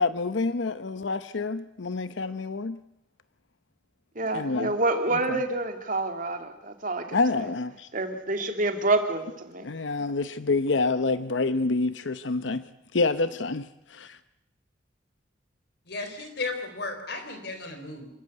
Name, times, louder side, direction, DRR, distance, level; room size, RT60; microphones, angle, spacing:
voice 1, 0.0-2.8 4.3-4.7 5.3-5.4 7.1-7.9 9.6-12.6 12.9-14.2, left 3 dB, 80° left, 13 dB, 0.8 m, -27 dB
voice 2, 4.2-7.5 7.9-9.7, right 2 dB, 45° right, 6 dB, 2.5 m, -28 dB
voice 3, 15.9-18.1, left 3 dB, 60° left, 7 dB, 4.1 m, -34 dB
26.5 x 14.5 x 9.6 m, 0.85 s
head